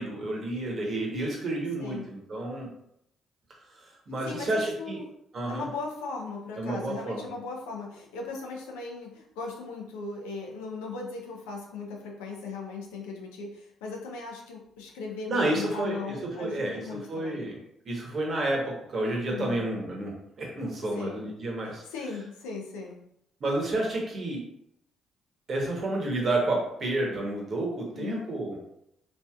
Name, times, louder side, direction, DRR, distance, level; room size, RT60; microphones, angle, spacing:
voice 1, 0.0-2.7 3.7-5.0 5.3-5.7 6.6-7.3 15.3-16.8 17.1-17.6 17.8-21.8 23.4-24.4 25.5-28.6, right 2 dB, 50° right, -1 dB, 1.1 m, -30 dB
voice 2, 4.2-5.1 5.5-17.4 19.3-19.7 20.9-21.2 21.9-23.0 27.9-28.3, left 4 dB, 85° left, 0 dB, 0.5 m, -38 dB
3.1 x 2.7 x 2.3 m, 0.75 s
hypercardioid pair, 50°, 0 cm